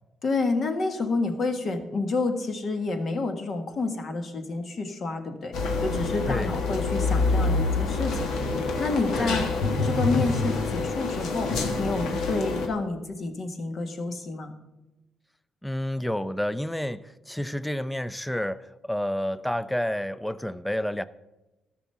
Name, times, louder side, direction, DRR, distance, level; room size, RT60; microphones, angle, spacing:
voice 1, 0.2-5.5 5.8-8.3 8.8-9.5 9.8-14.5, left 3 dB, 50° left, 7 dB, 1.6 m, -29 dB
sound 1, 5.5-12.7, left 3 dB, 80° left, 1.6 m, -26 dB
voice 2, 15.6-21.1, left 1 dB, 5° left, 17 dB, 0.5 m, -29 dB
13.0 x 6.2 x 6.9 m, 1.0 s
cardioid pair, 90°, 0 cm